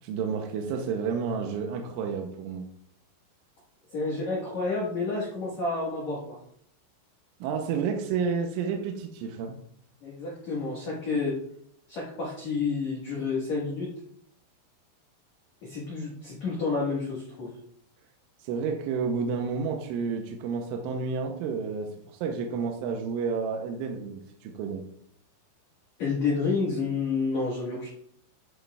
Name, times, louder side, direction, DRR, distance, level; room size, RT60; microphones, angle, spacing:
voice 1, 0.0-2.7 7.4-9.6 18.4-24.8, right 5 dB, 80° right, 2 dB, 3.1 m, -30 dB
voice 2, 3.9-6.4 10.0-11.3 11.9-13.9 15.6-17.5 26.0-27.9, left 4 dB, 80° left, -5 dB, 1.6 m, -29 dB
11.0 x 6.1 x 2.3 m, 0.68 s
omnidirectional pair, 6.0 m